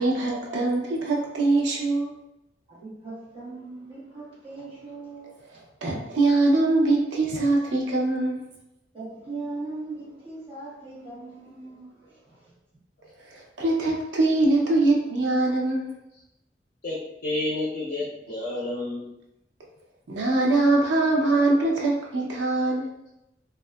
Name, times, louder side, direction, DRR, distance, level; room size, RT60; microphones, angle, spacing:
voice 1, 0.0-2.1 5.8-8.4 13.3-15.9 20.1-22.9, right 2 dB, 85° right, -2 dB, 0.5 m, -23 dB
voice 2, 2.7-5.4 8.9-12.5, right 3 dB, 30° right, -8 dB, 1.1 m, -39 dB
voice 3, 16.8-19.1, left 2 dB, 50° left, -5 dB, 0.5 m, -30 dB
2.7 x 2.2 x 2.2 m, 0.88 s
head